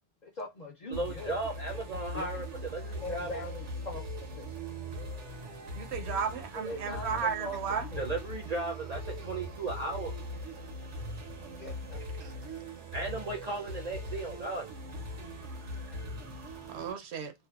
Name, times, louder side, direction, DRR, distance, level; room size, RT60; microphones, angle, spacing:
voice 1, 0.2-1.4 2.1-2.4 3.0-4.0 4.4-4.5 6.5-8.0 11.4-12.4, left 1 dB, 55° left, 0.5 m, -41 dB
voice 2, 0.9-3.3 5.4-5.5 8.0-10.1 12.9-14.7, right 2 dB, 50° right, 0.5 m, -36 dB
sound 1, 0.9-16.9, equal, 90° right, 1.1 m, -41 dB
voice 3, 5.8-7.9 12.2-12.3 16.7-17.3, right 6 dB, 70° right, 0.8 m, -34 dB
2.6 x 2.2 x 2.3 m
omnidirectional pair, 1.2 m